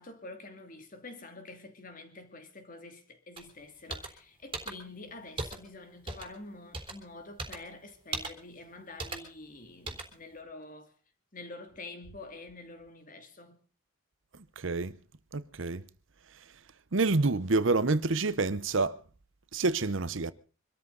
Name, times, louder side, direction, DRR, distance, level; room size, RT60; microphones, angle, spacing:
voice 1, 0.0-10.9 11.3-13.6, left 2 dB, 40° left, 2.6 m, -47 dB
sound 1, 3.4-3.5 3.9-4.1 4.5-4.7 5.4-5.6 6.1-6.3 6.7-6.9 7.4-7.6 8.1-8.3 9.0-9.2 9.9-10.1, right 3 dB, 25° right, 3.5 m, -36 dB
voice 2, 14.6-15.0 15.3-15.8 16.9-19.0 19.5-20.3, right 3 dB, 65° right, 0.9 m, -27 dB
25.0 x 13.5 x 4.0 m
head